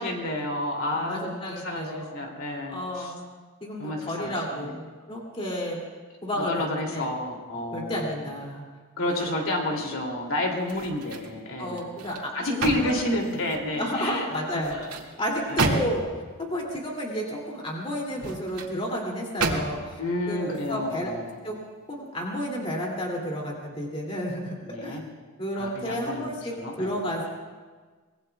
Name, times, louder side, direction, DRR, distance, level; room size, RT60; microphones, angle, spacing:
voice 1, 0.0-3.1 3.8-4.7 6.4-8.2 9.0-11.9 12.3-14.3 15.5-15.7 20.0-21.4 24.7-25.0 25.5-27.0, left 1 dB, 70° left, 0 dB, 2.9 m, -30 dB
voice 2, 0.9-2.2 2.7-5.8 6.2-7.1 7.7-8.6 9.1-9.3 9.7-9.8 11.6-12.9 13.7-14.9 15.2-16.0 16.4-20.0 20.3-21.1 21.4-21.6 21.9-25.0 25.4-27.3, equal, 25° left, -2 dB, 2.7 m, -32 dB
sound 1, 10.6-11.4 11.8-13.7 14.5-16.2 18.0-18.7 19.4-20.0 20.5-20.7, right 2 dB, 85° right, 2.1 m, -31 dB
24.5 x 20.5 x 2.4 m, 1.4 s
head